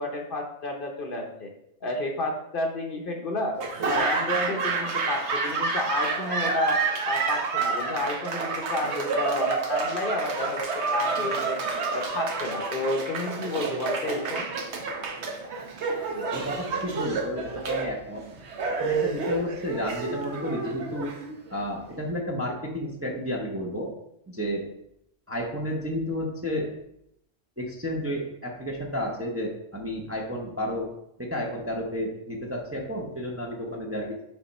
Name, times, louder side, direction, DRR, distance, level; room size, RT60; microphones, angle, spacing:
voice 1, 0.0-1.5 1.8-3.6 3.8-6.8 7.0-11.6 11.9-14.5, left 2 dB, 50° left, 2 dB, 0.8 m, -31 dB
Laughter / Applause, 3.6-21.7, right 4 dB, 65° right, 1.1 m, -29 dB
voice 2, 16.3-18.2 18.8-21.1 21.5-23.9 24.3-24.7 25.3-26.7 27.6-30.9 31.2-34.2, equal, 15° right, -1 dB, 0.6 m, -31 dB
6.9 x 3.4 x 4.1 m, 0.78 s
omnidirectional pair, 1.3 m